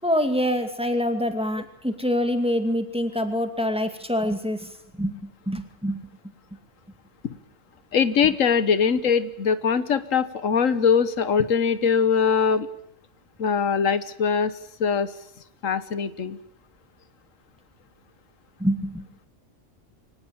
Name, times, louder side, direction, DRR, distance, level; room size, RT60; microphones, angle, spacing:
voice 1, 0.0-4.7 5.0-6.0 18.6-19.0, equal, 5° right, 7 dB, 2.3 m, -25 dB
voice 2, 7.9-12.7 13.4-14.5 14.8-15.1 15.6-16.4, left 6 dB, 90° left, 14 dB, 1.5 m, -22 dB
23.5 x 18.5 x 8.9 m, 0.76 s
omnidirectional pair, 1.3 m